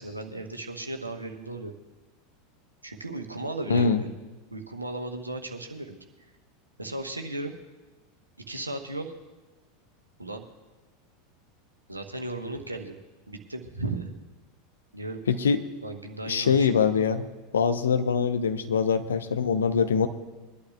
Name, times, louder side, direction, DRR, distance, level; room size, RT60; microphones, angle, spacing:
voice 1, 0.0-1.7 2.8-4.1 4.5-6.0 6.8-7.5 8.4-9.1 10.2-10.4 11.9-13.0 13.3-14.1 14.9-15.2 15.8-16.7, right 2 dB, 85° right, 4 dB, 1.1 m, -35 dB
voice 2, 3.7-4.0 15.3-15.6 16.2-17.2 17.5-20.1, left 6 dB, 70° left, 8 dB, 0.8 m, -23 dB
22.5 x 11.5 x 2.4 m, 1.2 s
figure-of-eight pair, 85°, 0 cm